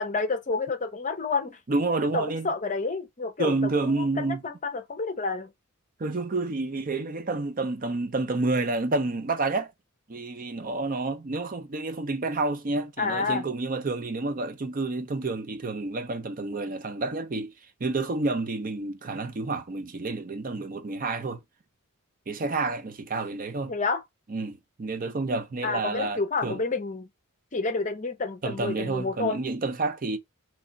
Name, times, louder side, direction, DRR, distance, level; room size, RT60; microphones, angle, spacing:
voice 1, 0.0-1.6 2.1-3.5 3.8-5.5 13.0-13.4 23.7-24.0 25.6-27.1 27.5-29.4, left 4 dB, 35° left, 0.7 m, -29 dB
voice 2, 1.7-2.5 3.4-4.4 6.0-9.7 10.1-17.5 17.8-21.4 22.3-23.7 24.3-26.6 28.4-30.2, right 3 dB, 40° right, 0.5 m, -29 dB
3.4 x 3.3 x 3.9 m
head